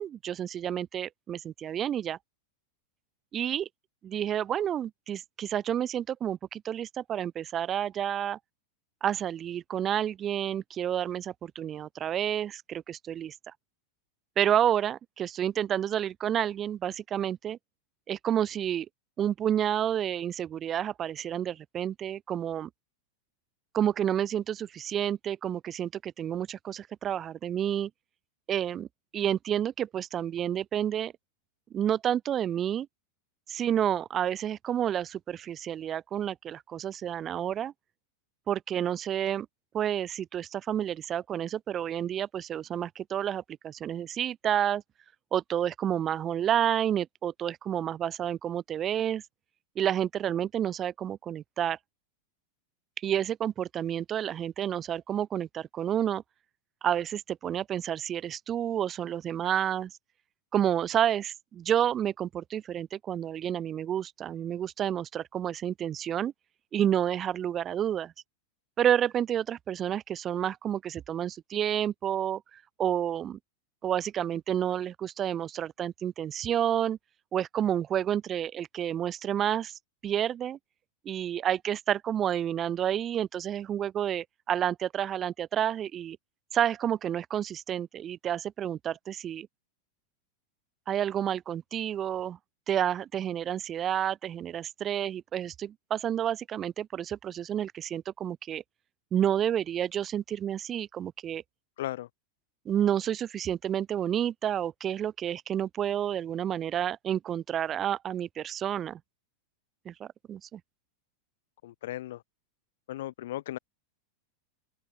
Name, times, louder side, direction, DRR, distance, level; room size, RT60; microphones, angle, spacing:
voice 1, 0.0-2.2 3.3-3.7 4.0-8.4 9.0-13.3 14.4-17.6 18.1-18.9 19.2-22.7 23.7-27.9 28.5-28.9 29.1-31.1 31.7-32.9 33.5-37.7 38.5-39.5 39.7-44.8 45.3-49.2 49.7-51.8 53.0-56.2 56.8-59.9 60.5-66.3 66.7-68.1 68.8-73.4 73.8-77.0 77.3-80.6 81.0-86.2 86.5-89.5 90.9-92.4 92.7-98.6 99.1-101.4 102.6-109.0 109.8-110.6, right 10 dB, 25° right, 1.4 m, -30 dB
voice 2, 101.8-102.1 111.6-112.2 112.9-113.6, left 14 dB, 55° left, 1.0 m, -36 dB
open air
figure-of-eight pair, 90°, 0 cm